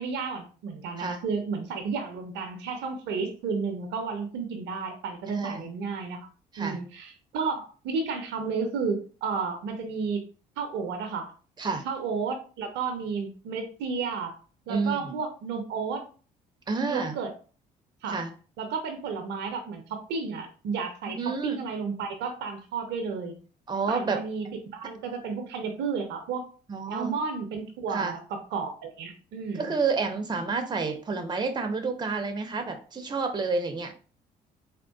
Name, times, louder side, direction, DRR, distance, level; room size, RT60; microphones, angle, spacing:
voice 1, 0.0-6.2 6.6-10.2 10.6-11.3 11.8-14.4 14.7-16.0 16.9-17.3 18.0-18.2 18.6-23.4 23.9-24.5 24.7-26.5 26.9-29.8, right 5 dB, 60° right, 5 dB, 0.6 m, -32 dB
voice 2, 5.3-5.7 6.5-6.8 11.6-11.9 14.7-15.1 16.7-17.2 18.0-18.3 21.1-21.6 23.7-24.2 26.7-27.1 27.9-28.2 29.5-33.9, right 4 dB, 20° right, 6 dB, 0.6 m, -29 dB
3.5 x 2.4 x 2.3 m, 0.38 s
figure-of-eight pair, 45°, 21 cm